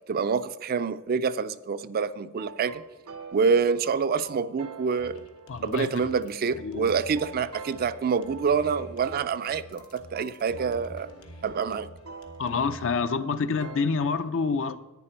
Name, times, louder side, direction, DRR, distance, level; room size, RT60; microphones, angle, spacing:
voice 1, 0.1-2.8 3.3-5.2 5.6-11.1 11.4-11.9, right 5 dB, 45° right, 0.4 m, -27 dB
sound 1, 2.4-14.2, right 5 dB, 85° right, 0.9 m, -47 dB
sound 2, 5.0-13.0, equal, 85° left, 1.3 m, -47 dB
voice 2, 5.5-6.0 6.6-6.9 12.4-14.8, left 4 dB, 65° left, 0.6 m, -27 dB
10.5 x 9.4 x 4.5 m
head